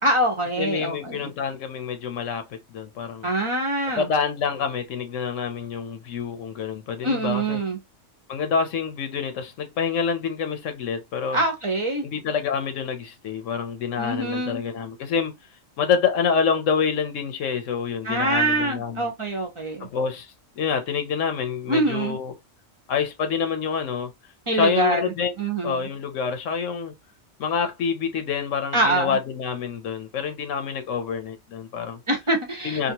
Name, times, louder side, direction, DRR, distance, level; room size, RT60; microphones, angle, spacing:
voice 1, 0.0-1.3 3.2-4.1 7.0-7.8 11.3-12.1 14.0-14.6 18.0-19.9 21.7-22.2 24.5-25.9 28.7-29.2 32.1-32.9, right 2 dB, 30° right, 0.7 m, -24 dB
voice 2, 0.6-3.3 4.0-7.6 8.3-11.4 12.0-15.3 15.8-19.1 19.8-22.3 22.9-24.1 24.5-25.3 25.6-26.9 27.4-32.0 32.6-32.9, left 6 dB, 80° left, 1.0 m, -27 dB
2.8 x 2.4 x 2.7 m
omnidirectional pair, 1.3 m